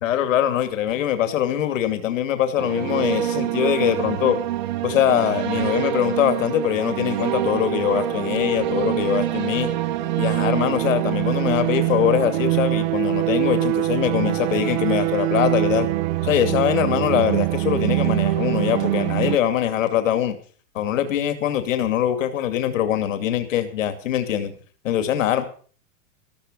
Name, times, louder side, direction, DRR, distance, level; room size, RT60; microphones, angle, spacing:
voice 1, 0.0-4.4 4.8-9.7 10.2-15.9 16.2-20.3 20.7-24.5 24.8-25.5, left 10 dB, 65° left, 8 dB, 2.5 m, -22 dB
sound 1, 2.6-19.4, right 14 dB, 30° right, 1.0 m, -24 dB
14.0 x 14.0 x 5.4 m, 0.43 s
supercardioid pair, 175°, 42 cm